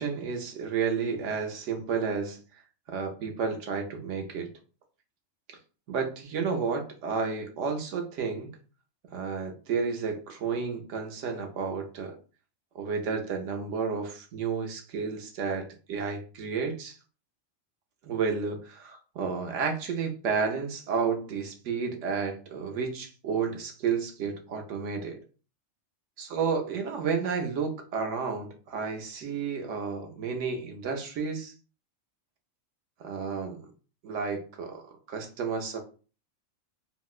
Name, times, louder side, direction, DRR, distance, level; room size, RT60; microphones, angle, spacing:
voice 1, 0.0-2.4 2.9-4.5 5.5-5.6 5.9-8.5 9.1-12.2 12.7-17.0 18.0-25.2 26.2-31.5 33.0-33.7 34.0-35.8, right 5 dB, 70° right, 4 dB, 1.0 m, -31 dB
3.8 x 2.0 x 2.4 m, 0.36 s
omnidirectional pair, 1.3 m